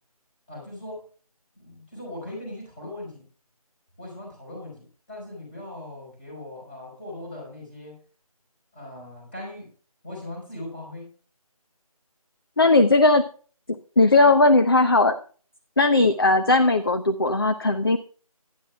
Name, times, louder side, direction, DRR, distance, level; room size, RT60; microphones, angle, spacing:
voice 1, 0.5-1.0 1.5-3.2 4.0-8.0 8.7-9.7 10.0-11.1 15.9-16.1, left 1 dB, 15° left, -3 dB, 4.9 m, -39 dB
voice 2, 12.6-13.3 14.0-15.2 15.8-18.0, left 2 dB, 40° left, 9 dB, 0.6 m, -18 dB
18.5 x 10.5 x 2.3 m, 0.40 s
figure-of-eight pair, 170°, 19 cm